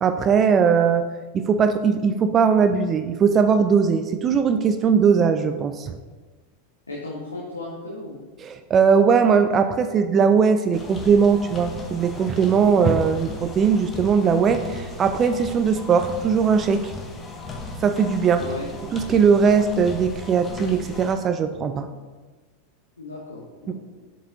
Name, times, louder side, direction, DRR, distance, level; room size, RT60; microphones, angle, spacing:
voice 1, 0.0-1.1 1.3-6.0 8.4-16.9 17.8-18.4 18.9-21.9 23.7-23.8, right 6 dB, 30° right, 9 dB, 0.3 m, -19 dB
voice 2, 6.9-8.2 18.3-18.8 23.0-23.7, left 2 dB, 85° left, -3 dB, 0.9 m, -35 dB
sound 1, 10.7-21.1, left 2 dB, 20° left, 1.1 m, -37 dB
7.6 x 4.7 x 2.7 m, 1.3 s
figure-of-eight pair, 90°, 0 cm